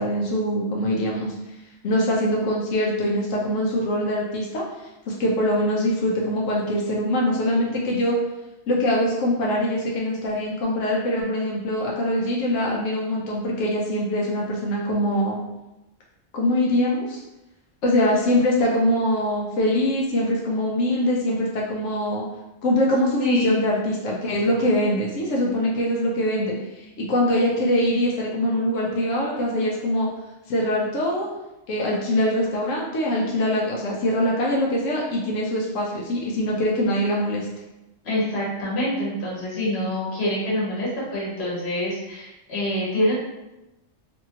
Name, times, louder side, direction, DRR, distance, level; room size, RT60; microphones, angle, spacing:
voice 1, 0.0-1.3 1.8-4.6 5.1-8.2 8.7-15.4 16.3-17.2 17.8-22.2 22.6-30.1 30.5-31.3 31.7-37.5, left 1 dB, 90° left, -3 dB, 1.0 m, -23 dB
voice 2, 23.2-23.6 38.0-43.1, left 1 dB, 60° left, -7 dB, 1.2 m, -26 dB
2.7 x 2.6 x 2.7 m, 0.97 s
omnidirectional pair, 1.3 m